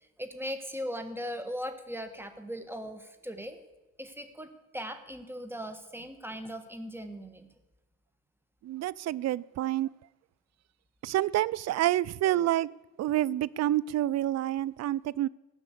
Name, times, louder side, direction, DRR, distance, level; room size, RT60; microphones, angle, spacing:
voice 1, 0.0-3.6 4.0-7.5, equal, 5° right, 1.4 m, -39 dB
voice 2, 8.6-9.9 11.0-12.7 13.0-15.3, right 14 dB, 60° right, 0.4 m, -28 dB
15.0 x 5.9 x 8.3 m
cardioid pair, 90°, 30 cm